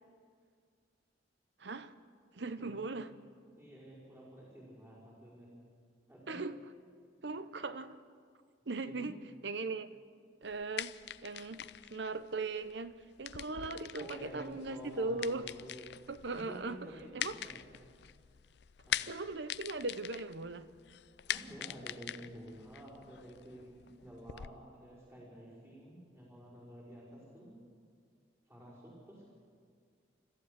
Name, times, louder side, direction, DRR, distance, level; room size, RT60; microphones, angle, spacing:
voice 1, 1.6-2.0 2.3-3.1 6.3-6.6 7.2-8.0 8.7-9.2 9.4-9.9 10.4-15.4 16.1-17.3 19.1-20.7, right 3 dB, 70° right, 12 dB, 0.8 m, -39 dB
voice 2, 2.5-3.0 3.6-5.5 6.1-6.4 8.8-9.1 13.9-15.8 16.3-17.7 18.0-18.1 18.8-19.1 21.3-27.6 28.5-29.3, right 1 dB, 15° right, -7 dB, 5.2 m, -51 dB
sound 1, 10.4-24.5, left 10 dB, 65° left, 0.4 m, -44 dB
29.5 x 14.5 x 6.7 m, 2.1 s
head